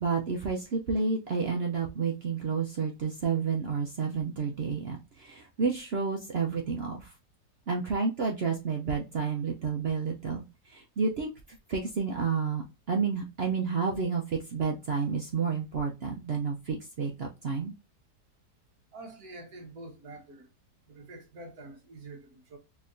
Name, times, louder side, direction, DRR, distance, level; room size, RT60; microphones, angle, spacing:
voice 1, 0.0-7.1 7.7-17.7, right 5 dB, 85° right, 0.5 m, -30 dB
voice 2, 18.9-20.5 20.9-22.6, right 2 dB, 60° right, 1.6 m, -46 dB
4.1 x 2.9 x 2.6 m
omnidirectional pair, 1.8 m